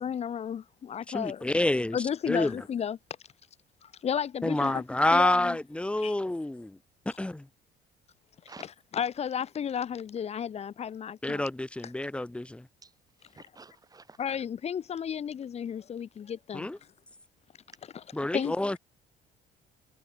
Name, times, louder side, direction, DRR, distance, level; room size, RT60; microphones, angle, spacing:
voice 1, 0.0-1.5 1.9-3.0 3.8-4.8 5.1-5.6 6.0-6.1 8.9-11.4 14.2-16.7 18.3-18.5, left 8 dB, 40° left, 0.9 m, -33 dB
voice 2, 1.1-2.0 2.3-2.6 4.4-6.8 7.1-7.5 11.2-12.7 16.5-16.8 18.1-18.8, left 1 dB, 5° left, 1.0 m, -28 dB
voice 3, 12.8-14.3, right 4 dB, 20° right, 4.4 m, -52 dB
cardioid pair, 110°, 17 cm